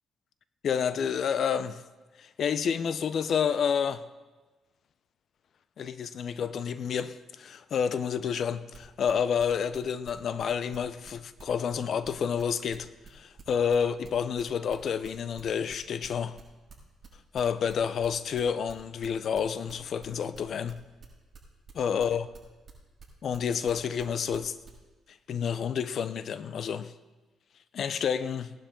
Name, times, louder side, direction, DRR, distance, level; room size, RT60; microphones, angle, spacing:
voice 1, 0.6-1.8 2.2-4.0 5.8-16.4 17.3-20.8 21.7-22.2 23.2-24.6 25.3-26.9 27.7-28.5, left 7 dB, 60° left, 0.7 m, -29 dB
sound 1, 8.7-24.8, right 5 dB, 35° right, 5.4 m, -49 dB
19.0 x 11.5 x 3.8 m
cardioid pair, 90°, 0 cm